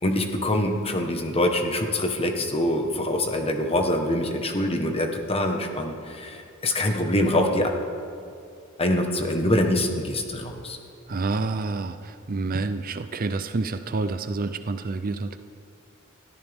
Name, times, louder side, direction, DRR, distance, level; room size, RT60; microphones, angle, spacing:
voice 1, 0.0-7.7 8.8-10.8, left 1 dB, 30° left, 4 dB, 1.3 m, -24 dB
voice 2, 11.1-15.4, right 3 dB, 45° right, 10 dB, 0.5 m, -28 dB
21.5 x 13.5 x 3.6 m, 2.5 s
head